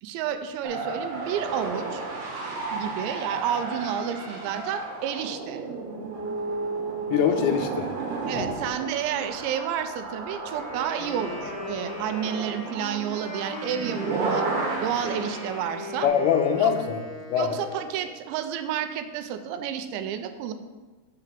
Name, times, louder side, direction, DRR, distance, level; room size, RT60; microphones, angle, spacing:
voice 1, 0.0-2.0 2.7-5.7 8.3-14.5 14.8-16.1 16.6-16.7 17.4-20.5, right 9 dB, 90° right, 9 dB, 2.9 m, -30 dB
sound 1, 0.6-16.1, right 3 dB, 60° right, 2.3 m, -33 dB
voice 2, 7.1-7.9 8.3-8.5 16.0-17.0 17.3-17.5, left 8 dB, 80° left, 4 dB, 2.3 m, -23 dB
Wind instrument woodwind instrument, 10.4-18.2, left 1 dB, 55° left, 2.0 m, -39 dB
6.0 x 4.9 x 6.7 m, 1.3 s
omnidirectional pair, 5.1 m